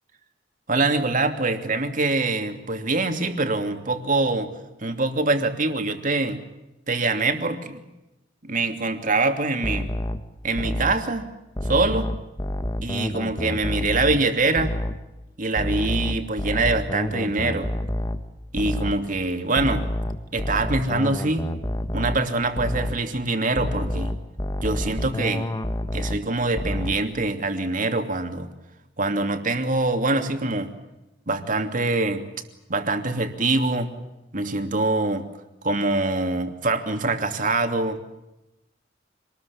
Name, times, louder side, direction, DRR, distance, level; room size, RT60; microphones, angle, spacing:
voice 1, 0.7-4.5 4.8-6.4 6.9-7.8 8.4-9.9 10.4-11.3 11.6-12.1 12.8-14.7 15.4-17.7 18.5-19.8 20.3-21.5 21.9-24.1 24.6-25.5 25.9-28.5 29.0-30.7 31.3-32.2 32.7-33.9 34.3-35.3 35.6-38.0, right 2 dB, 45° right, 6 dB, 2.9 m, -24 dB
sound 1, 9.6-11.1 11.6-14.3 14.6-15.1 15.6-19.1 19.6-22.3 22.6-23.1 23.6-26.3 26.6-27.1, left 1 dB, 20° left, 1.5 m, -29 dB
26.5 x 20.5 x 8.6 m, 0.96 s
head